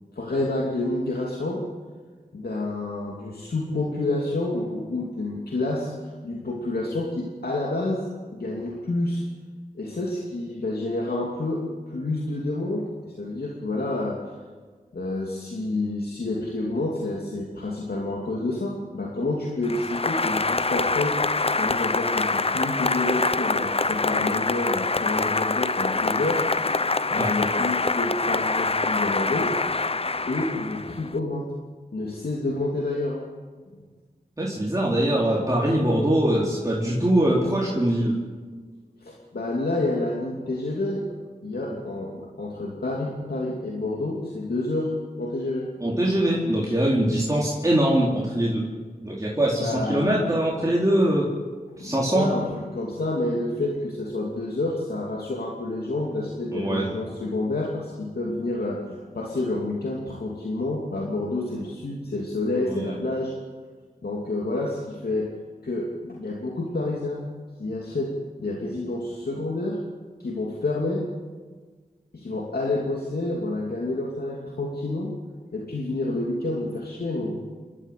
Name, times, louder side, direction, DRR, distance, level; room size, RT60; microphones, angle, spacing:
voice 1, 0.1-1.6 2.3-8.0 8.3-9.2 9.8-14.3 14.9-21.2 21.6-26.7 27.1-29.6 30.3-31.5 31.9-33.3 39.0-41.1 41.4-45.7 49.5-50.3 51.8-63.3 64.0-65.3 65.6-67.3 67.6-69.8 70.2-71.1 72.1-75.1 75.5-77.4, left 2 dB, 85° left, -2 dB, 2.7 m, -29 dB
Applause, 19.6-31.1, left 3 dB, 40° left, 0.7 m, -25 dB
voice 2, 34.4-38.2 45.8-48.7 49.0-51.3 51.8-52.3 56.5-56.9 62.7-62.9, right 1 dB, 20° right, -5 dB, 4.3 m, -22 dB
29.0 x 12.5 x 8.4 m, 1.5 s
wide cardioid pair, 55°, 16 cm